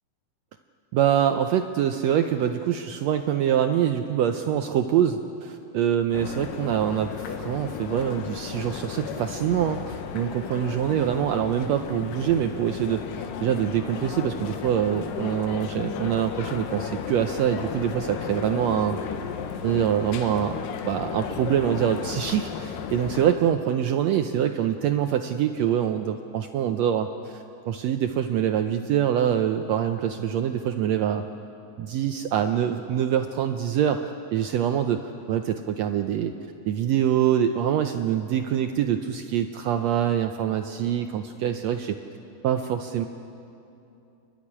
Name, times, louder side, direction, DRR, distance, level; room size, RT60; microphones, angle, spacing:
voice 1, 0.9-19.0 19.6-31.2 31.8-36.3 36.7-42.0 42.4-43.1, right 9 dB, 80° right, 7 dB, 1.5 m, -25 dB
sound 1, 6.1-23.3, left 7 dB, 85° left, 2.7 m, -34 dB
29.5 x 12.0 x 9.7 m, 2.8 s
omnidirectional pair, 3.8 m